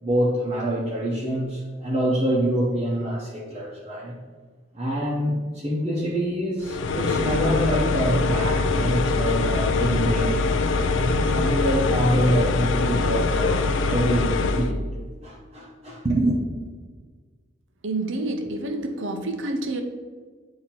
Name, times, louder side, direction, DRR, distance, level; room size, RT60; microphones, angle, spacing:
voice 1, 0.0-4.2 4.7-10.4 10.9-14.8 15.2-16.4, right 1 dB, 30° right, -6 dB, 0.8 m, -25 dB
sound 1, 6.6-14.7, left 3 dB, 70° left, 0.4 m, -23 dB
voice 2, 17.8-19.8, right 2 dB, 70° right, 5 dB, 0.7 m, -28 dB
8.4 x 2.8 x 4.3 m, 1.5 s
head